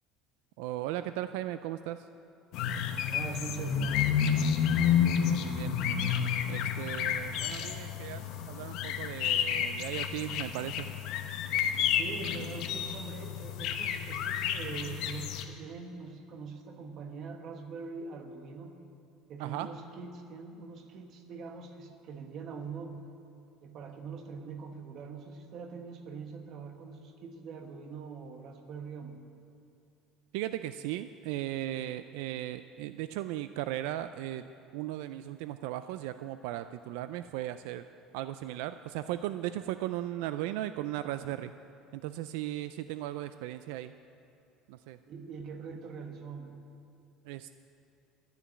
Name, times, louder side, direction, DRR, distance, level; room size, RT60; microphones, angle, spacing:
voice 1, 0.6-2.1 5.2-5.8 6.5-10.9 19.4-19.7 30.3-34.4 34.7-37.8 38.1-41.5 41.9-43.9 44.7-45.0 47.3-47.5, right 13 dB, 85° right, 11 dB, 0.3 m, -37 dB
sound 1, 2.5-15.4, left 8 dB, 55° left, 0.8 m, -30 dB
voice 2, 3.1-4.1 12.0-18.8 19.3-23.0 23.6-29.2 41.2-41.3 45.1-46.6, right 5 dB, 40° right, 5 dB, 1.2 m, -43 dB
12.5 x 7.0 x 9.6 m, 2.6 s
cardioid pair, 165°, 0 cm